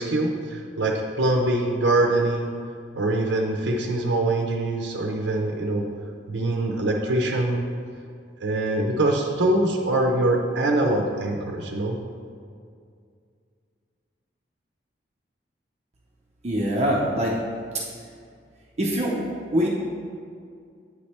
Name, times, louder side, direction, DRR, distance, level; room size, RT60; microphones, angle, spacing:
voice 1, 0.0-2.5 2.9-5.9 6.3-7.7 8.4-12.0, right 2 dB, 75° right, 1 dB, 0.6 m, -23 dB
voice 2, 16.4-17.3 18.8-19.7, equal, 35° right, -3 dB, 0.6 m, -24 dB
8.7 x 3.2 x 4.2 m, 2.3 s
head